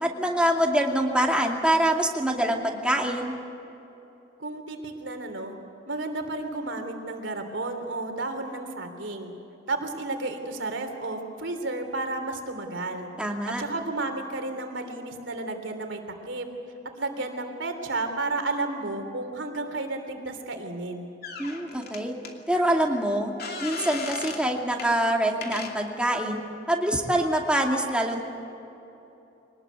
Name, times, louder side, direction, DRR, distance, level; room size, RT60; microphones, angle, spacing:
voice 1, 0.0-3.3 13.2-13.6 21.4-22.1 22.5-23.3 23.6-26.4 26.7-28.2, right 1 dB, 5° right, 1 dB, 2.4 m, -25 dB
voice 2, 4.4-5.5 5.9-9.3 9.7-13.1 13.5-16.0 16.3-16.5 17.0-21.1, right 2 dB, 75° right, 5 dB, 3.3 m, -32 dB
sound 1, 21.2-22.3 23.4-24.5 24.8-24.9 25.4-25.8, left 4 dB, 60° left, 2.6 m, -36 dB
24.5 x 19.5 x 8.2 m, 3.0 s
head